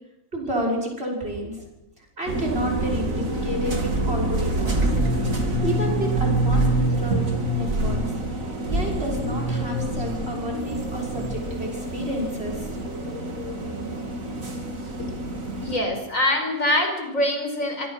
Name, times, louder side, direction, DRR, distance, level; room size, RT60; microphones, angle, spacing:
voice 1, 0.3-1.6 2.0-4.9 5.3-8.0 8.7-12.8, right 1 dB, 45° right, 0 dB, 6.6 m, -30 dB
sound 1, 2.3-15.8, right 1 dB, 75° right, 3.3 m, -26 dB
voice 2, 15.6-17.9, left 1 dB, 75° left, 4 dB, 5.4 m, -24 dB
25.5 x 22.5 x 6.3 m, 0.91 s
omnidirectional pair, 1.4 m